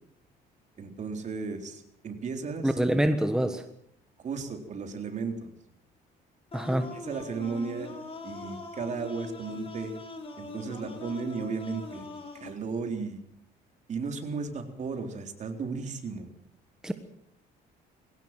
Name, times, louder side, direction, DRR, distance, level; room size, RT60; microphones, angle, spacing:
voice 1, 0.8-2.8 4.2-5.5 6.9-7.9 8.2-9.9 10.4-13.2 13.9-16.3, right 4 dB, 45° right, 5 dB, 3.8 m, -35 dB
voice 2, 2.6-3.6 6.5-6.9 16.8-16.9, right 1 dB, 5° right, 8 dB, 1.4 m, -25 dB
sound 1, 6.5-12.5, left 3 dB, 35° left, 5.4 m, -42 dB
21.5 x 18.0 x 7.6 m, 0.70 s
cardioid pair, 110°, 17 cm